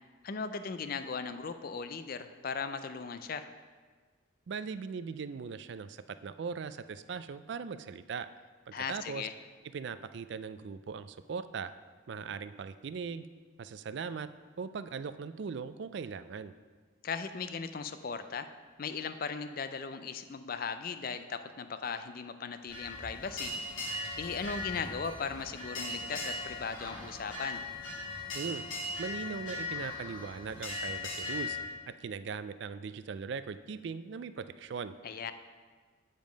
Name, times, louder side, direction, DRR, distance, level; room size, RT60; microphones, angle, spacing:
voice 1, 0.2-3.5 8.7-9.3 17.0-18.5 18.8-23.5 24.2-27.6 35.0-35.3, left 5 dB, 45° left, 10 dB, 0.4 m, -38 dB
voice 2, 4.5-8.3 8.7-9.3 9.7-11.7 12.1-13.3 13.6-14.3 14.6-16.5 28.3-28.6 29.0-31.6 31.9-34.9, right 5 dB, 55° right, 12 dB, 0.3 m, -39 dB
sound 1, 22.7-31.6, left 2 dB, 85° left, 2.3 m, -39 dB
9.2 x 5.1 x 5.2 m, 1.5 s
head